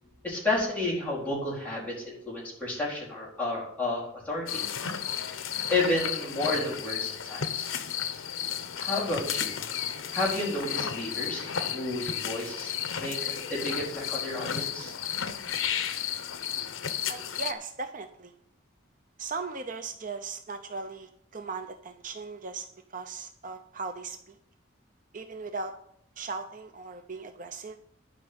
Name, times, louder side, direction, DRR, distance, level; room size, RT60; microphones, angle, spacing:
voice 1, 0.2-4.6 5.2-5.4 5.7-7.7 8.8-9.5 10.1-14.9, left 2 dB, 5° left, -5 dB, 4.1 m, -31 dB
sound 1, 4.5-17.5, left 8 dB, 80° left, 0.8 m, -33 dB
voice 2, 17.1-18.3 19.2-24.4 25.1-25.7 26.2-27.8, right 4 dB, 40° right, 8 dB, 0.6 m, -38 dB
11.5 x 5.3 x 8.0 m, 0.72 s
head